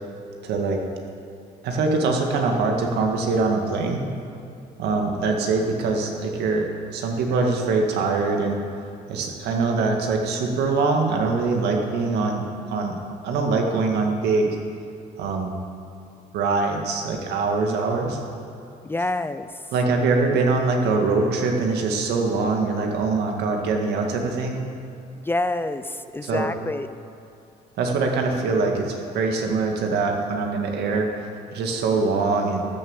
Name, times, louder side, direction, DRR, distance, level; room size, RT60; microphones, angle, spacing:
voice 1, 0.4-0.8 1.6-4.0 4.8-8.6 9.1-14.6 15.2-15.5 16.3-18.2 19.7-24.6 26.2-26.5 27.8-31.1 31.5-32.6, right 3 dB, 75° right, 2 dB, 2.1 m, -23 dB
voice 2, 18.8-19.5 25.2-26.9, left 2 dB, 15° left, 11 dB, 0.5 m, -27 dB
13.0 x 9.7 x 7.3 m, 2.6 s
cardioid pair, 110°, 17 cm